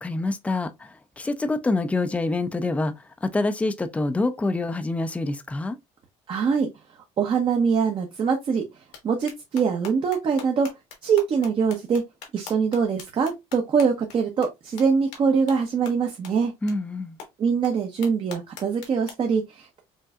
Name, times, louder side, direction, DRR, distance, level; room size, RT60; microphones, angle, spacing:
voice 1, 0.0-5.8 16.6-17.2, left 2 dB, 10° left, 0.4 m, -26 dB
voice 2, 6.3-6.7 7.2-8.6 9.0-10.7 11.0-12.0 12.3-16.5 17.4-19.8, right 6 dB, 40° right, 0.8 m, -23 dB
sound 1, 8.9-9.0 9.3-14.2 14.4-14.5 14.8-14.9 15.1-15.2 15.5-15.6 15.9-16.0 16.2-16.3 16.7-16.8 17.2-17.3 17.6-17.7 18.0-19.1, left 6 dB, 85° left, 1.5 m, -41 dB
5.4 x 2.6 x 2.4 m
cardioid pair, 110°, 13 cm